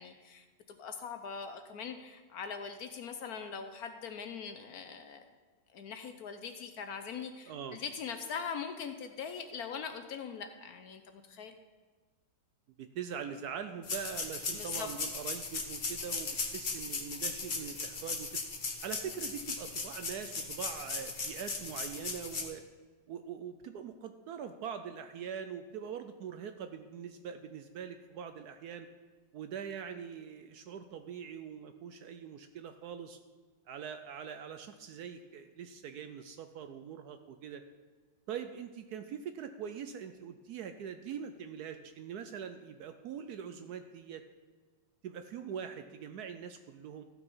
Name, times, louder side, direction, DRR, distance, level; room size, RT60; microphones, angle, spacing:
voice 1, 0.0-5.3 5.7-11.5 14.5-14.9, left 6 dB, 65° left, 8 dB, 1.0 m, -42 dB
voice 2, 7.5-7.8 12.8-18.4 18.8-22.6 23.1-28.9 29.3-33.2 33.7-37.6 38.3-44.2 45.0-47.0, right 7 dB, 70° right, 8 dB, 0.9 m, -43 dB
sound 1, 13.8-22.4, left 4 dB, 35° left, 1.1 m, -37 dB
14.0 x 6.1 x 5.4 m, 1.4 s
omnidirectional pair, 2.0 m